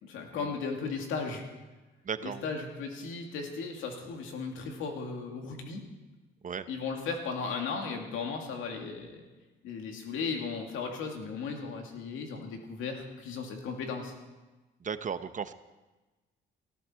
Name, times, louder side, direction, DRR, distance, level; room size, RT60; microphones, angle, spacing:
voice 1, 0.0-1.4 2.2-5.9 6.7-9.2 9.6-14.1, left 5 dB, 90° left, 2 dB, 2.5 m, -36 dB
voice 2, 2.0-2.4 6.4-6.7 14.8-15.5, right 7 dB, 40° right, 12 dB, 0.8 m, -35 dB
18.0 x 14.0 x 4.5 m, 1.2 s
cardioid pair, 90°, 20 cm